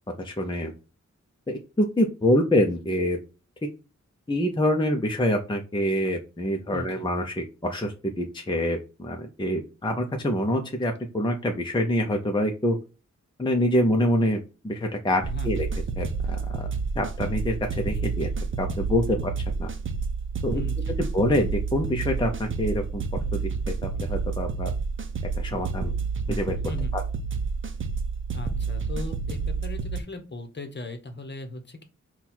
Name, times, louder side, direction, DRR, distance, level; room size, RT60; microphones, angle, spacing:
voice 1, 0.2-0.7 1.5-3.2 4.3-12.8 13.4-15.7 16.0-16.7 17.0-18.3 18.6-19.3 19.6-19.7 20.4-20.6 21.1-23.0 23.3-23.4 23.8-24.7 25.4-25.9 26.3-26.6 26.9-27.0, left 1 dB, 15° left, 2 dB, 0.6 m, -26 dB
voice 2, 6.7-7.1 15.2-15.6 20.5-21.0 26.7-26.9 28.3-31.8, left 2 dB, 35° left, 5 dB, 1.0 m, -38 dB
sound 1, 15.2-30.0, right 4 dB, 45° right, 0.6 m, -29 dB
4.0 x 2.3 x 4.2 m, 0.31 s
wide cardioid pair, 75°, 29 cm